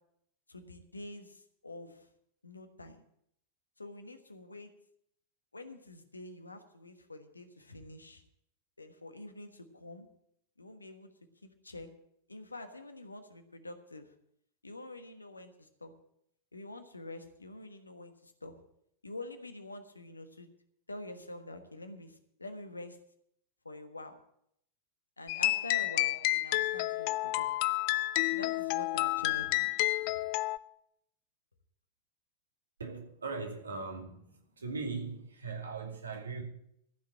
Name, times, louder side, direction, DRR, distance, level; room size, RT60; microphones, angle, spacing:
voice 1, 0.5-2.1 2.4-3.0 3.8-4.7 5.5-8.2 8.8-10.1 10.6-11.1 11.4-11.9 12.3-14.1 14.6-15.9 16.5-18.6 19.0-20.5 20.9-23.0 23.6-24.2 25.2-27.5 28.3-29.7 30.0-30.2, left 2 dB, 80° left, 1.4 m, -46 dB
sound 1, 25.3-30.6, left 18 dB, 45° left, 0.4 m, -30 dB
voice 2, 32.8-34.2 34.6-36.4, right 4 dB, 75° right, 2.4 m, -39 dB
14.5 x 6.1 x 8.6 m
figure-of-eight pair, 90°, 0 cm